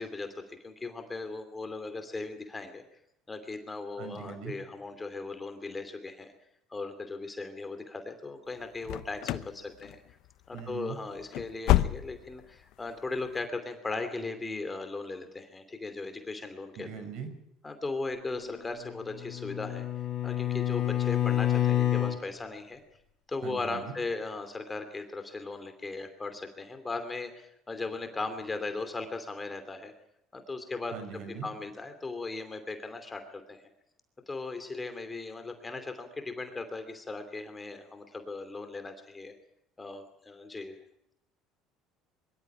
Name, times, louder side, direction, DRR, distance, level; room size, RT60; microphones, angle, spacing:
voice 1, 0.0-2.8 3.3-6.3 6.7-10.2 10.5-16.9 17.6-19.9 20.2-22.8 23.3-29.9 30.3-30.9 31.4-33.6 34.3-39.3 39.8-40.8, left 3 dB, 20° left, 7 dB, 2.7 m, -38 dB
voice 2, 4.0-4.5 10.5-11.0 16.8-17.3 23.4-23.9 30.9-31.5, right 6 dB, 65° right, 9 dB, 5.7 m, -40 dB
sound 1, 8.8-9.6 9.8-10.3 10.6-10.7 11.1-12.4 12.7-12.8 13.3-13.4, left 15 dB, 70° left, 0.9 m, -28 dB
Bowed string instrument, 18.8-22.2, left 12 dB, 50° left, 4.8 m, -28 dB
23.0 x 13.0 x 10.0 m, 0.79 s
supercardioid pair, 110°, 0 cm